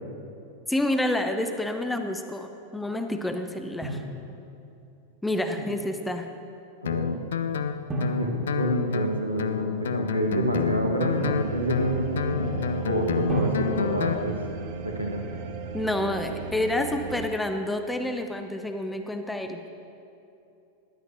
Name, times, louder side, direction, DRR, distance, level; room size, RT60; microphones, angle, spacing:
voice 1, 0.7-4.0 5.2-6.3 15.7-19.6, left 1 dB, 5° left, 6 dB, 0.5 m, -28 dB
Drum, 3.8-4.9 7.9-9.7 13.3-15.3, equal, 20° right, 1.5 m, -34 dB
voice 2, 6.8-7.1 8.1-14.4 14.8-15.2, right 1 dB, 90° right, 0 dB, 1.2 m, -28 dB
Guitar, 6.9-14.2, left 7 dB, 65° left, 0.4 m, -29 dB
sound 1, 11.1-17.3, right 6 dB, 50° right, 0.8 m, -36 dB
13.0 x 11.0 x 2.6 m, 2.7 s
figure-of-eight pair, 90°, 0 cm